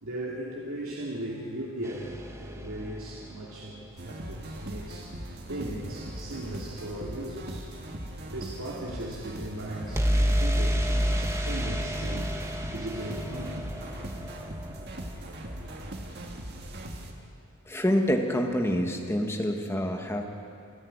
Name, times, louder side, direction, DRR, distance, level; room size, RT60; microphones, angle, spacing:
voice 1, 0.0-2.1 2.4-5.2 5.5-7.7 8.3-12.3 12.7-14.1, right 1 dB, 75° right, -5 dB, 2.9 m, -37 dB
sound 1, 1.8-3.8 9.9-15.7, equal, 15° right, 1.3 m, -30 dB
sound 2, 4.0-17.1, right 1 dB, 50° right, 2.0 m, -40 dB
voice 2, 17.7-20.3, equal, 10° left, 3 dB, 1.6 m, -27 dB
28.0 x 10.5 x 9.8 m, 2.5 s
head